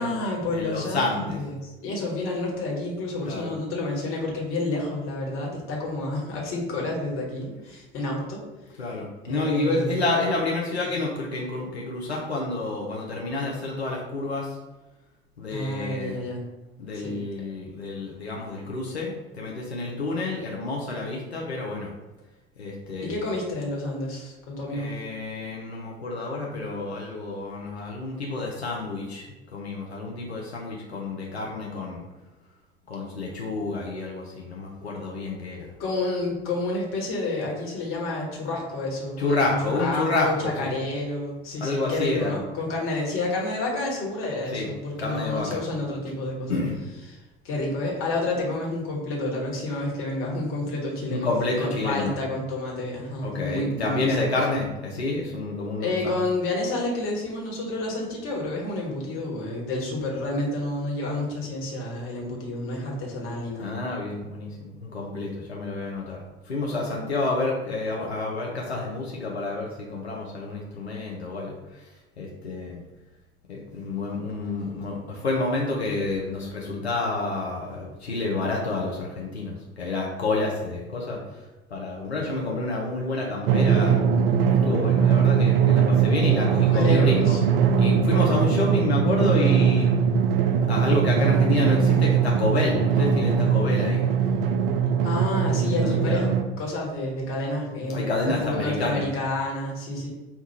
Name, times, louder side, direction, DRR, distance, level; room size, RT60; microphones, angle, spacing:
voice 1, 0.0-8.4 9.3-10.0 15.5-16.4 16.9-17.1 23.0-24.9 35.8-46.6 47.1-47.2 47.4-51.3 51.6-54.3 55.8-63.8 86.7-87.4 95.0-96.3 96.6-100.1, left 2 dB, 45° left, -2 dB, 1.2 m, -29 dB
voice 2, 0.5-1.4 3.2-3.5 8.8-14.6 15.4-16.2 16.8-21.9 22.6-23.3 24.7-32.0 32.9-35.7 39.2-40.7 41.6-42.3 44.5-44.7 45.0-45.6 46.5-46.8 51.1-52.2 53.2-56.2 63.6-66.2 66.5-71.8 72.2-72.8 73.5-81.4 81.7-83.9 84.5-87.4 87.8-89.9 90.6-94.0 95.6-96.3 97.9-99.0, left 2 dB, 90° left, -3 dB, 0.5 m, -29 dB
Drum, 83.5-96.4, right 7 dB, 65° right, 0.5 m, -21 dB
5.7 x 2.3 x 2.8 m, 1.1 s
figure-of-eight pair, 70°, 32 cm